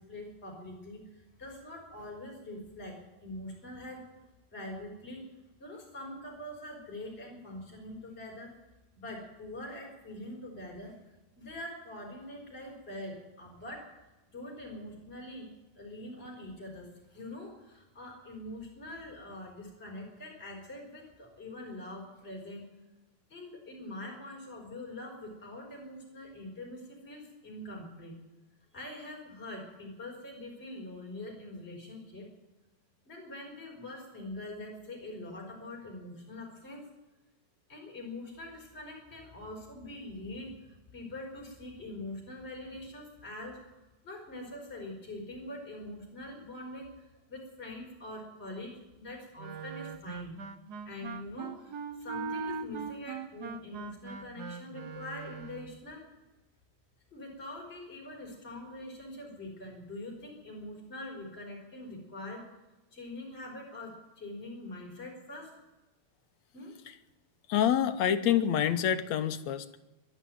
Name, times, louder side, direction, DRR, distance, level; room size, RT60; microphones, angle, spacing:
voice 1, 0.0-4.0 4.5-5.2 5.6-8.5 9.0-14.0 14.3-15.5 15.8-22.6 23.3-28.2 28.7-32.3 33.1-36.9 37.7-43.6 44.0-50.3 50.9-56.0 57.1-62.4 62.9-65.5 66.5-66.8, left 1 dB, 20° left, -2 dB, 5.1 m, -44 dB
Wind instrument woodwind instrument, 49.4-55.8, right 5 dB, 75° right, 0.9 m, -40 dB
voice 2, 67.5-69.8, left 9 dB, 70° left, 10 dB, 2.1 m, -27 dB
22.0 x 12.5 x 9.3 m, 1.1 s
omnidirectional pair, 3.4 m